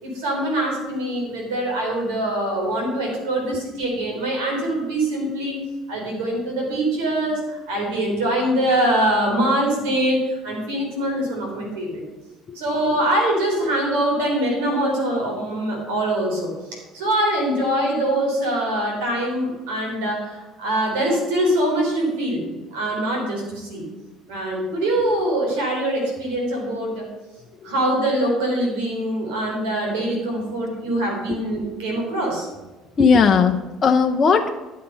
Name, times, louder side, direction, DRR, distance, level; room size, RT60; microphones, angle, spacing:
voice 1, 0.0-5.6 5.9-12.0 12.5-16.5 16.9-23.9 24.3-27.1 27.6-32.5, right 1 dB, 85° right, -1 dB, 4.0 m, -23 dB
voice 2, 33.0-34.5, left 5 dB, 35° left, 3 dB, 0.8 m, -17 dB
11.5 x 6.6 x 5.6 m, 1.2 s
supercardioid pair, 85°, 0 cm